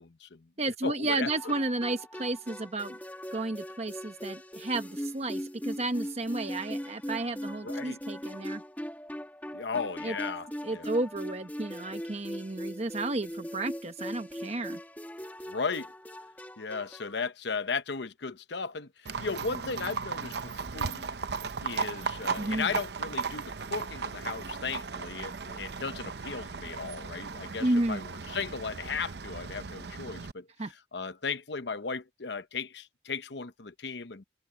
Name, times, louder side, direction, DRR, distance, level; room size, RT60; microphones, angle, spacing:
voice 1, 0.0-1.5 7.6-8.0 9.5-10.9 15.5-15.9 16.6-21.1 21.6-34.2, left 5 dB, 70° left, 0.9 m, -36 dB
voice 2, 0.6-3.0 3.3-8.6 10.0-10.1 10.6-14.8 22.3-22.8 27.6-28.1 30.6-30.7, right 2 dB, 35° right, 1.0 m, -32 dB
sound 1, 1.3-17.2, equal, 10° left, 2.1 m, -40 dB
Livestock farm animals working animals, 19.1-30.3, right 5 dB, 60° right, 0.7 m, -36 dB
head